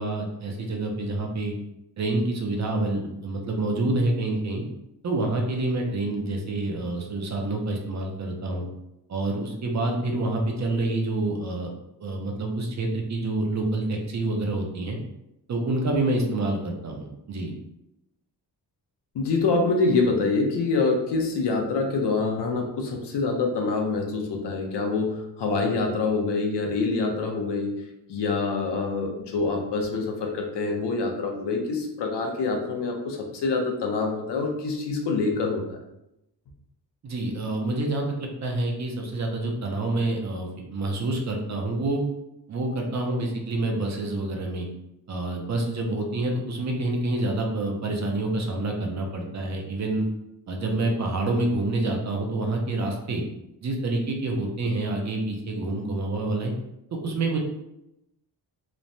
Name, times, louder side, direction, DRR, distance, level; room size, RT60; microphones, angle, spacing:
voice 1, 0.0-1.5 2.0-4.6 5.0-8.7 9.1-11.7 12.0-15.0 15.5-17.5 37.0-42.0 42.5-44.7 45.1-50.1 50.5-53.2 53.6-56.5 57.0-57.4, right 2 dB, 45° right, 1 dB, 0.4 m, -27 dB
voice 2, 19.1-27.7 28.1-35.8, left 3 dB, 75° left, 2 dB, 0.6 m, -26 dB
3.1 x 2.0 x 2.6 m, 0.86 s
wide cardioid pair, 170°, 41 cm